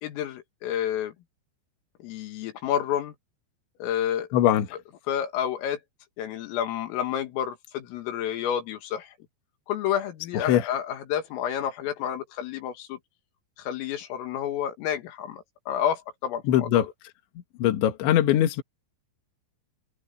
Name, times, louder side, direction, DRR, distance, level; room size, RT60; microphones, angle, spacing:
voice 1, 0.0-1.1 2.0-3.1 3.8-4.3 5.1-5.8 6.2-9.2 9.7-13.0 13.6-16.9, left 10 dB, 90° left, 4.9 m, -30 dB
voice 2, 4.3-4.7 10.3-10.7 16.5-16.9 17.6-18.6, left 11 dB, 70° left, 3.9 m, -21 dB
omnidirectional pair, 5.8 m